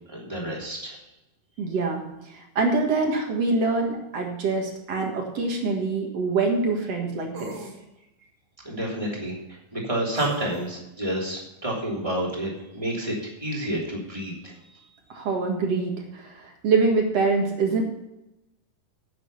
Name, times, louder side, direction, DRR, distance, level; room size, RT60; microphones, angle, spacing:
voice 1, 0.1-1.0 8.6-14.5, right 1 dB, 10° right, -3 dB, 2.8 m, -30 dB
voice 2, 1.6-7.5 15.1-17.8, right 3 dB, 50° right, 1 dB, 2.3 m, -25 dB
sound 1, 5.0-5.1 7.3-7.8 10.1-10.7, right 3 dB, 65° right, 3.6 m, -39 dB
11.0 x 8.6 x 5.5 m, 0.92 s
omnidirectional pair, 4.3 m